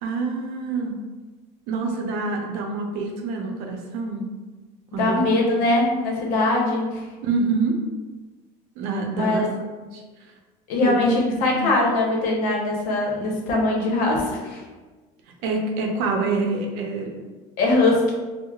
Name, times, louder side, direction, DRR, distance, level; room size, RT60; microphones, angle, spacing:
voice 1, 0.0-0.9 1.7-4.3 4.9-5.3 5.6-5.7 7.2-7.8 8.8-9.5 9.9-10.0 10.8-11.7 15.4-17.1, right 3 dB, 75° right, 1 dB, 0.6 m, -26 dB
voice 2, 5.0-7.0 9.1-9.5 10.7-14.6 17.6-18.0, left 2 dB, 65° left, -1 dB, 0.8 m, -21 dB
4.5 x 2.0 x 2.3 m, 1.3 s
cardioid pair, 135°, 15 cm